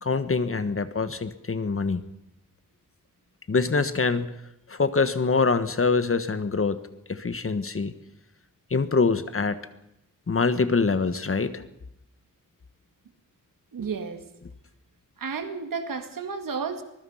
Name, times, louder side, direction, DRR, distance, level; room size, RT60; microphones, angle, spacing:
voice 1, 0.0-2.0 3.5-4.3 4.7-6.8 7.1-7.9 8.7-9.6 10.3-11.6, left 4 dB, 40° left, 11 dB, 1.4 m, -24 dB
voice 2, 13.7-14.3 15.2-16.8, right 5 dB, 80° right, 7 dB, 2.3 m, -32 dB
24.0 x 21.5 x 5.7 m, 0.81 s
wide cardioid pair, 85°, 33 cm